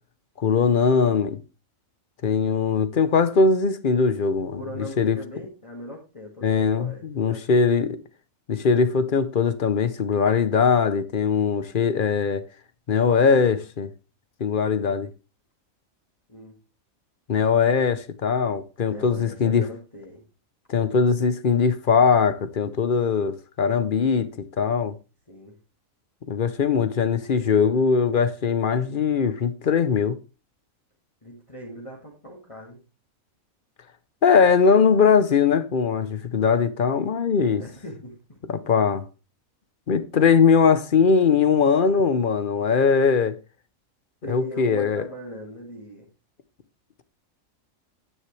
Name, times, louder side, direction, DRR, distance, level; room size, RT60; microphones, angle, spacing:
voice 1, 0.4-1.4 2.2-5.2 6.4-8.0 8.5-12.4 12.9-13.9 14.4-15.1 17.3-19.7 20.7-24.3 24.6-24.9 26.3-30.2 34.2-37.6 38.5-39.0 39.9-43.4 44.3-45.1, left 5 dB, 45° left, 0.8 m, -21 dB
voice 2, 4.5-7.7 13.0-13.5 16.3-16.6 18.8-20.2 25.3-25.6 31.2-32.8 37.6-38.4 44.2-46.1, left 1 dB, 25° left, 2.0 m, -39 dB
10.5 x 9.7 x 3.3 m
omnidirectional pair, 1.4 m